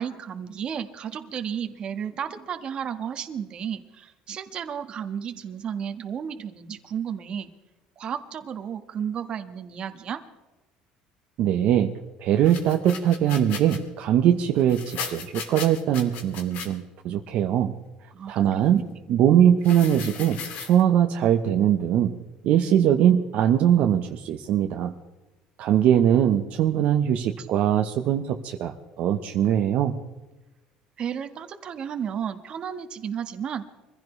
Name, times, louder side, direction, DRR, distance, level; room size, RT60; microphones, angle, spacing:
voice 1, 0.0-7.5 8.0-10.2 18.1-19.1 27.4-27.5 31.0-33.6, right 8 dB, 35° right, 8 dB, 1.4 m, -33 dB
voice 2, 11.4-17.7 18.3-18.8 19.1-22.1 22.4-24.9 25.6-29.9, right 10 dB, 55° right, 4 dB, 1.0 m, -21 dB
sound 1, 12.4-13.8 14.6-16.7 19.6-20.8, left 6 dB, 65° left, 2.7 m, -36 dB
24.5 x 15.5 x 3.3 m, 1.1 s
cardioid pair, 145°, 3 cm